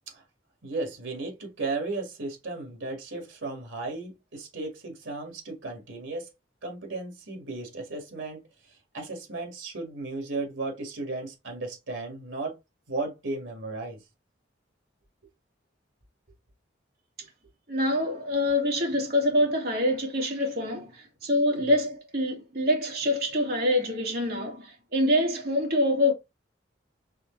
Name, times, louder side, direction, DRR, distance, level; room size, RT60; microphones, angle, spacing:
voice 1, 0.6-6.3 6.6-12.6 12.9-14.0 21.6-21.7, right 3 dB, 80° right, 1.9 m, -35 dB
voice 2, 17.7-26.1, left 1 dB, 50° right, 2.0 m, -25 dB
4.8 x 3.3 x 3.2 m
head